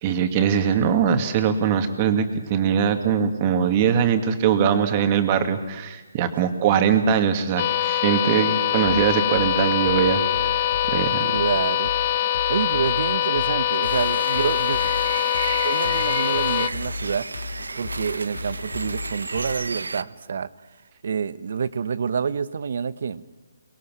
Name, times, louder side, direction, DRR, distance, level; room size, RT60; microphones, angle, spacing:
voice 1, 0.0-10.2 10.6-11.3, right 7 dB, 30° right, 2.1 m, -21 dB
sound 1, 7.6-16.7, left 11 dB, 40° left, 0.9 m, -23 dB
sound 2, 8.8-19.5, left 4 dB, 90° left, 2.3 m, -35 dB
voice 2, 11.2-11.9 12.5-14.8 15.6-17.2 17.7-20.5 21.0-23.2, right 6 dB, 60° right, 1.0 m, -27 dB
sound 3, 13.8-20.0, right 3 dB, 90° right, 0.9 m, -33 dB
24.0 x 21.0 x 6.2 m
hypercardioid pair, 155°, 0 cm